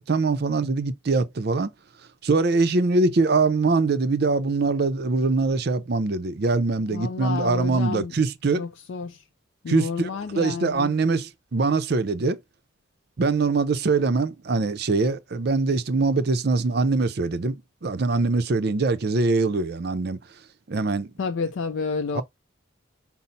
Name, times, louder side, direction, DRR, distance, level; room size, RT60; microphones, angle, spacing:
voice 1, 0.0-1.7 2.2-8.6 9.7-10.1 10.3-12.4 13.2-20.2 20.7-21.1 22.1-22.2, right 3 dB, 55° right, 0.5 m, -23 dB
voice 2, 6.9-8.1 8.6-9.2 9.6-10.9 21.2-22.2, left 5 dB, 70° left, 0.4 m, -30 dB
5.4 x 2.0 x 3.9 m
head